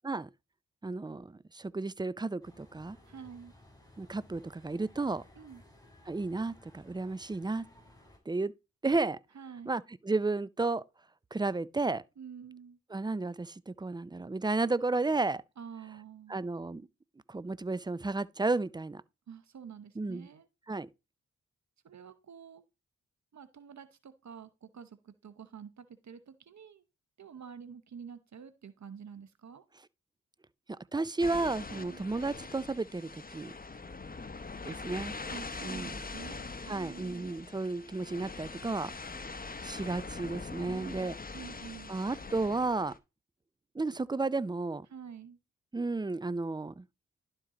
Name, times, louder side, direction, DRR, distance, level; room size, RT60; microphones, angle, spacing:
voice 1, 0.8-3.0 4.0-5.2 6.1-7.7 8.3-8.5 8.8-9.2 9.7-10.8 11.3-12.0 12.9-15.4 16.3-16.8 17.3-19.0 20.0-20.3 20.7-20.9 30.7-33.5 34.6-35.1 35.6-36.0 36.6-38.9 39.6-41.2 41.9-42.9 43.7-44.9 45.7-46.8, right 3 dB, 15° right, 0.4 m, -33 dB
sound 1, 2.4-8.2, left 1 dB, 10° left, 3.8 m, -58 dB
voice 2, 3.1-3.5 5.4-5.6 9.3-9.8 12.2-12.8 15.6-16.4 19.3-20.5 21.8-22.6 23.3-26.8 27.2-29.6 31.7-32.0 35.3-37.3 40.6-41.9 44.9-45.4, right 7 dB, 65° right, 0.9 m, -48 dB
sound 2, 31.2-43.0, left 3 dB, 30° left, 0.9 m, -43 dB
11.5 x 4.5 x 3.8 m
cardioid pair, 50°, 30 cm